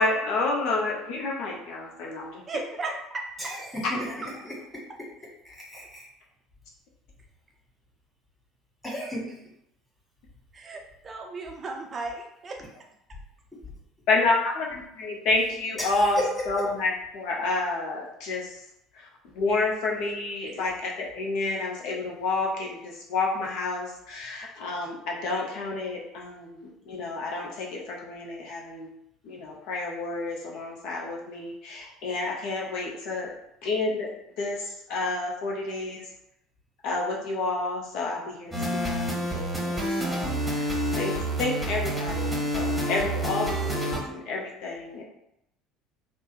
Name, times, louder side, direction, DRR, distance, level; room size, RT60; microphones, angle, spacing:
voice 1, 0.0-2.4 14.1-16.2 16.5-18.6 18.9-28.9 29.2-33.3 33.6-34.1 34.4-36.1 36.8-40.7 41.0-45.0, left 3 dB, 60° left, -2 dB, 0.6 m, -29 dB
voice 2, 2.5-3.5 10.5-12.6, right 3 dB, 30° right, 2 dB, 0.4 m, -35 dB
voice 3, 3.4-4.2 4.4-4.8 5.4-6.1 8.8-9.3 15.8-16.3 16.6-16.7, left 1 dB, 10° left, -5 dB, 1.5 m, -34 dB
sound 1, 38.5-44.0, right 1 dB, 10° right, 0.9 m, -28 dB
3.0 x 2.1 x 3.1 m, 0.79 s
figure-of-eight pair, 60°, 0 cm